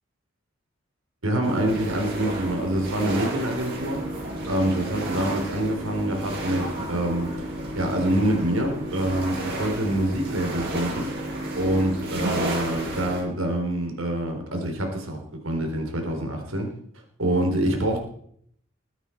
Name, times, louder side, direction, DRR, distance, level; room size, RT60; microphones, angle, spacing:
voice 1, 1.2-4.0 4.5-7.3 7.8-11.1 11.5-16.7 17.2-18.0, right 1 dB, 75° right, 3 dB, 3.6 m, -26 dB
sound 1, 1.4-13.2, right 1 dB, 50° right, 5.4 m, -32 dB
21.0 x 9.1 x 4.5 m, 0.64 s
head